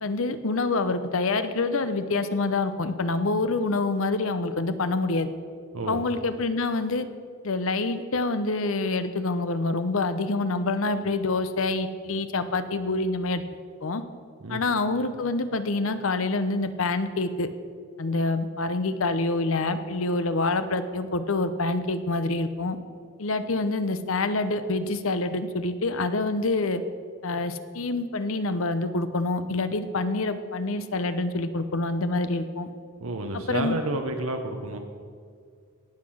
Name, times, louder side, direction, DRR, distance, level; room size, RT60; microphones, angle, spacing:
voice 1, 0.0-5.3 5.9-7.1 7.4-13.4 13.8-14.0 14.5-17.5 18.0-22.8 23.2-26.8 27.2-32.7 33.3-33.8, left 3 dB, 65° left, 11 dB, 0.7 m, -26 dB
voice 2, 33.0-34.8, right 2 dB, 70° right, 4 dB, 1.0 m, -30 dB
17.5 x 5.8 x 6.4 m, 2.1 s
head